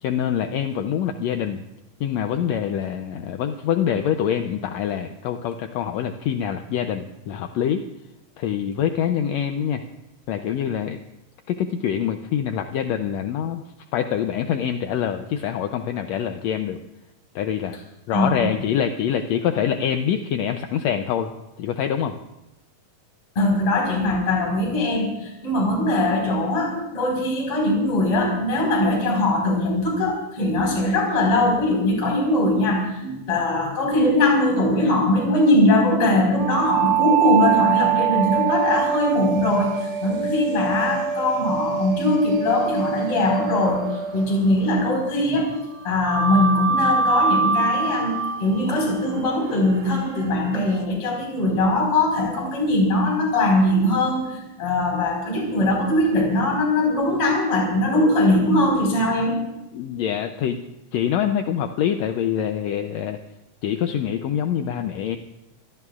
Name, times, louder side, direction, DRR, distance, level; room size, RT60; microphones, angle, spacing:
voice 1, 0.0-1.6 2.0-7.8 8.4-9.8 10.3-11.0 11.5-13.6 13.9-16.8 17.3-17.8 18.1-21.3 21.6-22.2 59.7-60.6 60.9-63.2 63.6-65.2, left 9 dB, 75° left, 6 dB, 1.6 m, -25 dB
voice 2, 18.1-18.4 23.4-45.5 45.8-59.4, left 1 dB, 40° left, -1 dB, 5.6 m, -21 dB
sound 1, 36.4-45.2 46.0-50.8, right 6 dB, 70° right, 3.2 m, -24 dB
27.0 x 17.5 x 2.5 m, 0.94 s
omnidirectional pair, 3.8 m